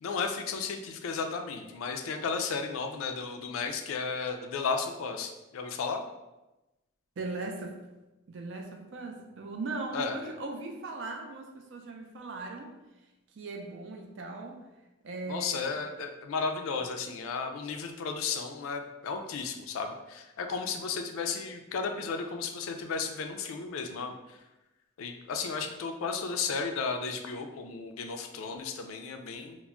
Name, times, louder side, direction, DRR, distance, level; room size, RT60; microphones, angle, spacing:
voice 1, 0.0-6.0 9.9-10.1 15.3-24.4 25.0-29.6, left 5 dB, 85° left, 5 dB, 0.3 m, -34 dB
voice 2, 7.2-7.8 8.3-12.7 13.3-14.6 15.0-15.7, right 3 dB, 65° right, 3 dB, 0.4 m, -39 dB
2.2 x 2.0 x 3.6 m, 1.0 s
head